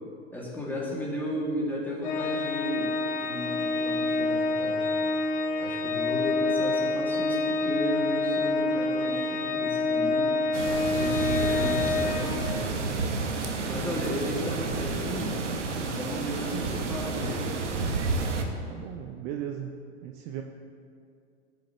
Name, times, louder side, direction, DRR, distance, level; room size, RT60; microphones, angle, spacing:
voice 1, 0.3-4.9 5.6-10.4 10.9-13.0 13.6-15.4 15.8-17.6, equal, 5° left, -5 dB, 2.2 m, -34 dB
Organ, 2.0-12.8, left 3 dB, 25° left, 0.6 m, -27 dB
sound 1, 10.5-18.4, right 3 dB, 85° right, 1.0 m, -30 dB
voice 2, 18.7-19.8 20.0-20.4, right 10 dB, 40° right, 4 dB, 0.5 m, -36 dB
14.0 x 6.4 x 3.0 m, 2.3 s
hypercardioid pair, 105°, 35 cm